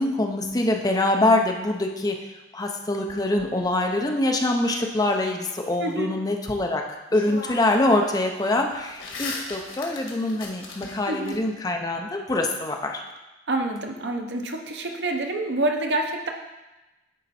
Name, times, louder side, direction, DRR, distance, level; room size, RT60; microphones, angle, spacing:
voice 1, 0.0-2.2 2.5-6.8 7.1-13.0, left 2 dB, 20° left, 3 dB, 0.6 m, -24 dB
sound 1, 3.1-4.4 6.6-6.7 7.1-7.9 8.2-11.4, left 3 dB, 90° left, 1.7 m, -38 dB
voice 2, 5.8-6.2 11.0-11.4 13.5-16.3, right 2 dB, 65° right, 3 dB, 0.8 m, -27 dB
10.0 x 4.3 x 4.2 m, 1.1 s
head